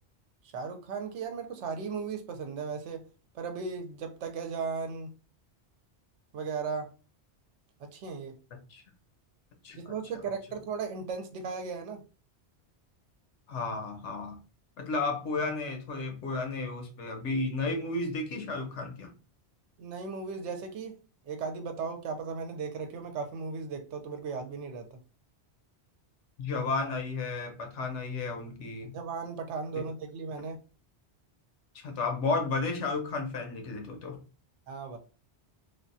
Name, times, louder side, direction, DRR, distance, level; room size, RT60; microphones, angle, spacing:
voice 1, 0.5-3.0 3.3-5.1 6.3-6.9 7.8-8.3 9.7-12.0 19.8-21.0 21.2-24.9 28.9-30.6 34.7-35.0, right 5 dB, 85° right, 6 dB, 0.9 m, -36 dB
voice 2, 13.5-14.4 14.8-19.1 26.4-28.9 29.7-29.8 31.7-34.2, left 3 dB, 85° left, 5 dB, 1.0 m, -33 dB
3.3 x 2.2 x 2.5 m, 0.35 s
omnidirectional pair, 1.2 m